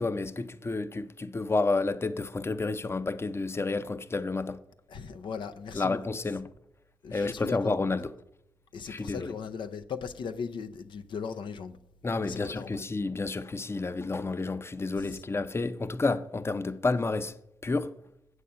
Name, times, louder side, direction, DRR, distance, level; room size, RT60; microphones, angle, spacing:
voice 1, 0.0-4.6 5.7-6.5 7.1-8.1 8.9-9.3 12.0-17.4 17.6-17.9, left 3 dB, 30° left, 0.6 m, -30 dB
voice 2, 4.9-6.0 7.0-7.7 8.7-11.8 12.2-12.8 15.0-15.2, left 6 dB, 80° left, 0.5 m, -38 dB
8.2 x 7.6 x 5.5 m
cardioid pair, 50°, 8 cm